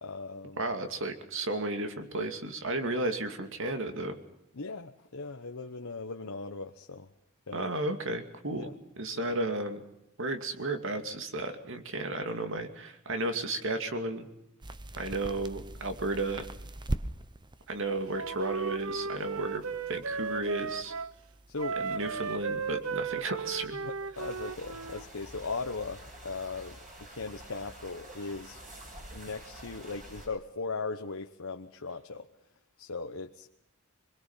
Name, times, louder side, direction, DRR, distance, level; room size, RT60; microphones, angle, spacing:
voice 1, 0.0-0.6 4.5-7.1 7.5-7.7 8.5-8.7 9.2-9.3 21.5-21.8 23.8-26.8 27.1-28.6 29.1-32.3 32.8-33.5, left 3 dB, 80° left, 4 dB, 1.1 m, -38 dB
voice 2, 0.6-4.2 7.5-9.8 10.2-14.3 15.0-16.5 17.7-20.9 21.8-23.9, right 2 dB, 65° right, 7 dB, 2.5 m, -33 dB
sound 1, 14.6-24.8, right 1 dB, 20° right, 0.9 m, -43 dB
Wind instrument woodwind instrument, 18.1-21.1 21.6-25.1, right 5 dB, 80° right, 0.8 m, -35 dB
sound 2, 24.1-30.3, right 1 dB, 40° right, 7.7 m, -48 dB
25.0 x 22.0 x 5.7 m, 0.85 s
head